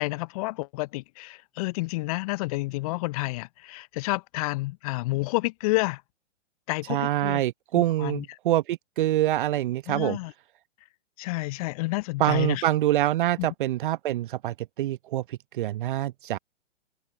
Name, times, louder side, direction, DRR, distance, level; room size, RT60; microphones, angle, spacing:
voice 1, 0.0-6.0 6.7-7.4 7.7-8.2 9.9-10.3 11.2-12.6 13.4-13.5, left 22 dB, 30° left, 0.8 m, -30 dB
voice 2, 6.9-10.2 12.2-16.4, right 14 dB, 45° right, 1.0 m, -25 dB
open air
figure-of-eight pair, 120°, 35 cm